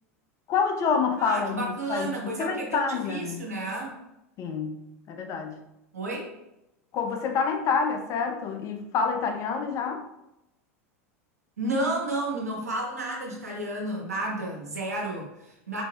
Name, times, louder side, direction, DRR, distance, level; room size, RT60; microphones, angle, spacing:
voice 1, 0.5-2.1 2.4-3.5 4.4-4.8 5.1-5.5 6.9-10.0, left 5 dB, 40° left, 4 dB, 0.6 m, -27 dB
voice 2, 1.2-4.0 5.9-6.3 11.6-15.8, right 2 dB, 90° right, -2 dB, 0.9 m, -31 dB
4.2 x 3.1 x 2.2 m, 0.89 s
hypercardioid pair, 85°, 8 cm